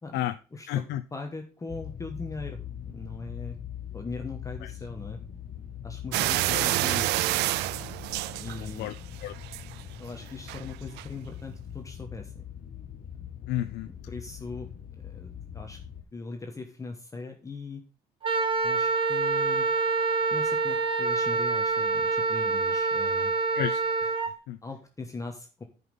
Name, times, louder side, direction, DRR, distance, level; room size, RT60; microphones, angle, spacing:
voice 1, 0.0-3.6 3.9-5.2 5.8-7.3 8.4-8.9 10.0-12.5 13.8-15.8 16.1-17.8 18.6-19.7 20.3-23.3 24.6-25.6, left 3 dB, 20° left, 3 dB, 1.2 m, -40 dB
voice 2, 0.7-1.0 4.6-4.7 6.3-6.6 8.6-8.9 9.2-9.3 13.5-13.9 23.5-24.6, left 13 dB, 85° left, 9 dB, 0.6 m, -32 dB
sound 1, 1.7-16.0, left 9 dB, 55° left, 2.0 m, -42 dB
sound 2, 6.1-9.0 9.4-9.8 10.5-10.6 11.0-11.1, right 18 dB, 85° right, 0.4 m, -28 dB
Wind instrument woodwind instrument, 18.2-24.3, right 4 dB, 30° right, 1.1 m, -26 dB
9.9 x 5.4 x 5.3 m, 0.35 s
cardioid pair, 110°, 17 cm